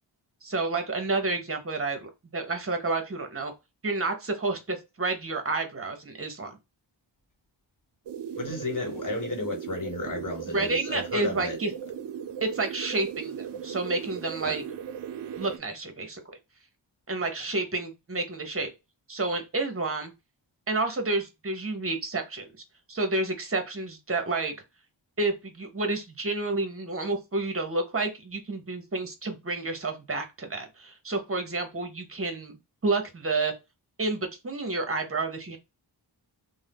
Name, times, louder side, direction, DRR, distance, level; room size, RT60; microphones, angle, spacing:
voice 1, 0.4-3.5 3.8-6.6 10.5-11.7 12.4-14.6 15.4-16.2 17.1-18.7 19.1-20.1 20.7-22.5 22.9-24.5 25.2-32.6 32.8-33.5 34.0-35.6, right 3 dB, 30° right, 0.9 m, -30 dB
sound 1, 8.1-15.6, right 8 dB, 65° right, 0.5 m, -37 dB
voice 2, 8.3-11.6 14.4-14.6 17.4-17.5, left 2 dB, 40° left, 1.1 m, -33 dB
2.6 x 2.1 x 3.4 m
cardioid pair, 55°, 46 cm